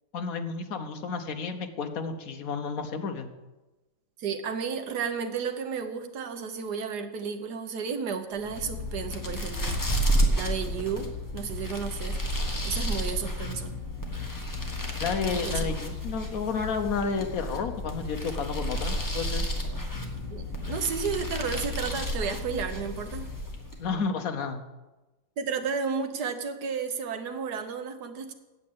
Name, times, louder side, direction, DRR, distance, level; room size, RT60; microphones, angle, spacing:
voice 1, 0.1-3.3 15.0-19.5 23.8-24.6, left 5 dB, 55° left, 7 dB, 1.1 m, -31 dB
voice 2, 4.2-9.8 10.3-12.2 12.6-13.7 15.3-15.7 20.3-23.3 25.4-28.3, right 6 dB, 60° right, 6 dB, 1.4 m, -32 dB
sound 1, 8.4-23.9, equal, 10° left, 1.0 m, -31 dB
8.5 x 7.7 x 8.6 m, 1.1 s
omnidirectional pair, 2.2 m